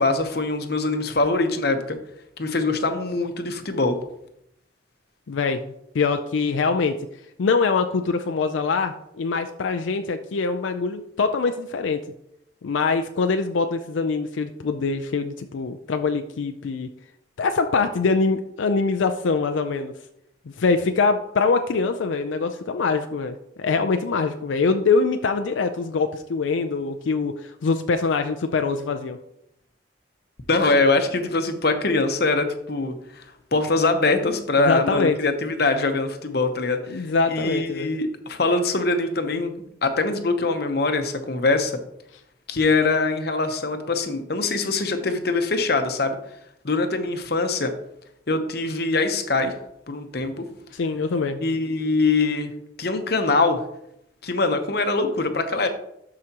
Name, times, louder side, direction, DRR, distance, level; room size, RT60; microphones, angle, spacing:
voice 1, 0.0-2.0 2.4-4.0 30.5-33.2 33.5-37.0 37.3-39.5 39.8-41.7 42.5-46.2 46.6-47.7 48.3-49.5 49.9-50.4 51.4-52.5 52.8-53.6 54.2-55.7, left 3 dB, 55° left, 7 dB, 0.9 m, -23 dB
voice 2, 5.3-5.6 5.9-7.0 7.4-12.0 12.6-16.9 17.4-19.9 20.6-29.2 34.6-35.2 36.9-37.9 50.7-51.4, left 4 dB, 85° left, 7 dB, 0.4 m, -23 dB
12.5 x 4.9 x 2.9 m, 0.78 s
head